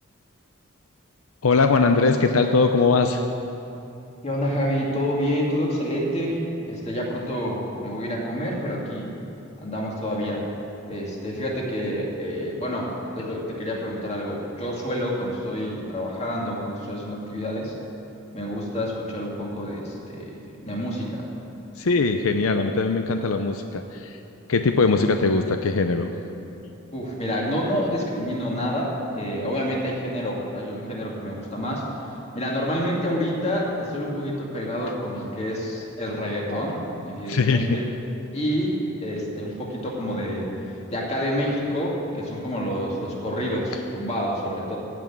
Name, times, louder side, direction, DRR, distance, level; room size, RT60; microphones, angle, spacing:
voice 1, 1.4-3.2 21.8-24.2 24.5-26.1 37.3-37.8, left 4 dB, 80° left, 6 dB, 0.6 m, -21 dB
voice 2, 4.2-9.1 9.6-10.4 10.9-17.7 18.3-21.3 26.9-31.9 32.3-37.9 38.3-40.5 40.9-44.8, equal, 30° left, -3 dB, 2.4 m, -28 dB
16.0 x 6.1 x 8.7 m, 2.8 s
head